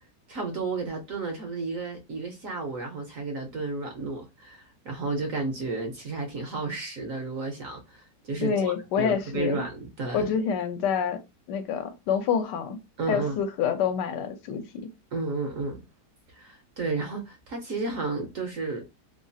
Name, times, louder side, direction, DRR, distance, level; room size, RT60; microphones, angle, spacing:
voice 1, 0.3-10.3 13.0-13.4 15.1-15.8 16.3-18.9, right 3 dB, 60° right, 0.9 m, -32 dB
voice 2, 8.4-9.6 10.1-11.2 11.5-12.8 13.1-14.9, left 7 dB, 80° left, 1.2 m, -27 dB
3.0 x 2.3 x 2.6 m
omnidirectional pair, 1.9 m